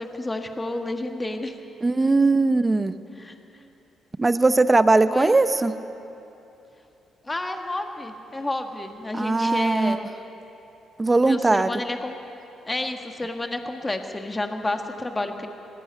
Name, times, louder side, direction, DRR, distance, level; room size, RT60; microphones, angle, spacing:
voice 1, 0.0-1.5 3.2-3.3 5.1-5.3 7.2-10.0 11.1-12.2 12.7-15.5, left 2 dB, 20° left, 4 dB, 1.5 m, -30 dB
voice 2, 1.8-2.9 4.2-5.7 9.1-10.0 11.0-11.7, right 3 dB, 20° right, 12 dB, 0.8 m, -19 dB
19.0 x 18.0 x 8.2 m, 3.0 s
cardioid pair, 90°, 0 cm